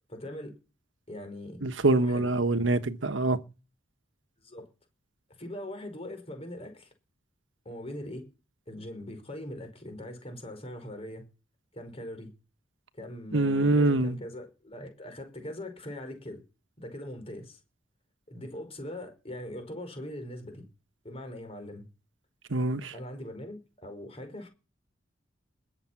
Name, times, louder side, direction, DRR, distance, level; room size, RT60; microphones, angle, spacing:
voice 1, 0.1-0.5 1.1-1.6 1.9-2.4 4.4-4.7 5.4-6.9 7.6-8.3 8.7-11.3 11.7-12.3 12.9-16.4 16.8-17.6 18.3-20.7 21.0-21.8 22.9-24.5, left 1 dB, 35° left, 5.1 m, -41 dB
voice 2, 1.6-3.4 13.3-14.2 22.5-22.9, right 2 dB, 85° right, 1.3 m, -25 dB
21.0 x 7.4 x 5.9 m
head